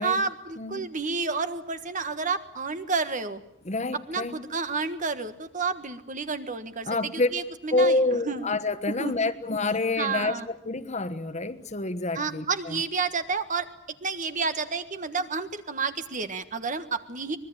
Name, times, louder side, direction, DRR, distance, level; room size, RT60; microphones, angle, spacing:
voice 1, 0.0-3.4 4.1-8.0 8.2-8.4 9.0-9.3 10.0-10.5 12.1-13.7 14.0-17.4, right 4 dB, 40° right, 10 dB, 1.5 m, -30 dB
voice 2, 0.6-0.9 3.6-4.4 6.8-7.3 7.7-12.8, left 2 dB, 35° left, 11 dB, 1.3 m, -27 dB
25.0 x 21.0 x 8.8 m, 0.72 s
head